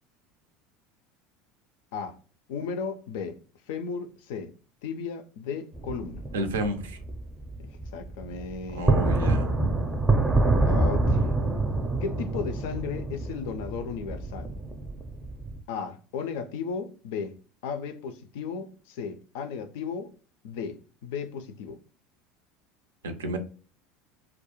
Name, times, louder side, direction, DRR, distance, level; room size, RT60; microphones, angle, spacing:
voice 1, 2.5-3.4 3.7-4.5 4.8-6.3 7.6-9.0 10.6-11.2 12.0-14.5 15.7-17.4 17.6-20.1 20.4-21.8, left 6 dB, 65° left, 0.3 m, -35 dB
sound 1, 5.7-15.6, right 2 dB, 20° right, 0.5 m, -26 dB
voice 2, 6.3-7.0 8.7-9.5 23.0-23.4, right 1 dB, 75° right, 0.4 m, -30 dB
2.3 x 2.1 x 2.9 m
figure-of-eight pair, 75°, 0 cm